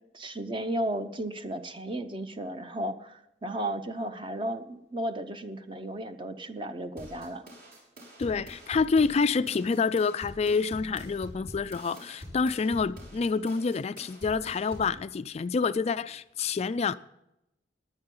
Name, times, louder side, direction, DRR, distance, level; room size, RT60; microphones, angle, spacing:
voice 1, 0.1-7.4, right 1 dB, 30° right, 0.9 m, -34 dB
sound 1, 7.0-15.0, equal, 55° right, 5.3 m, -46 dB
voice 2, 8.2-16.9, left 4 dB, 35° left, 0.3 m, -27 dB
18.5 x 10.5 x 3.9 m
head